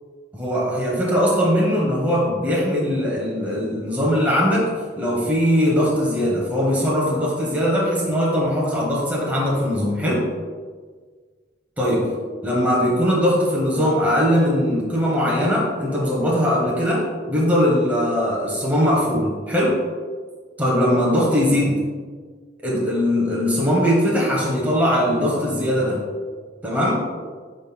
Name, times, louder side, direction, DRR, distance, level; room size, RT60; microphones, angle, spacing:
voice 1, 0.3-4.7 5.0-10.2 11.8-12.1 12.4-19.8 20.6-21.8 22.6-26.0 26.6-27.0, equal, 10° right, -5 dB, 1.0 m, -20 dB
11.0 x 4.1 x 2.3 m, 1.6 s
head